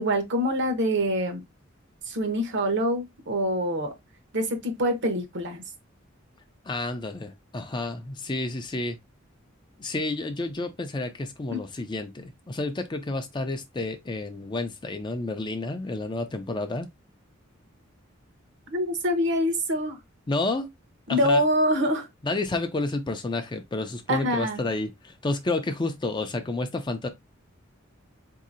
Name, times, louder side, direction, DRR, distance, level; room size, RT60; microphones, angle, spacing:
voice 1, 0.0-1.4 2.1-3.9 4.3-5.6 11.5-11.6 18.7-20.0 21.1-22.1 24.1-24.6, equal, 60° right, 0.9 m, -25 dB
voice 2, 6.7-9.0 9.8-16.9 20.3-20.7 21.1-21.4 22.2-27.1, left 2 dB, 25° left, 0.5 m, -30 dB
4.0 x 2.7 x 2.5 m
head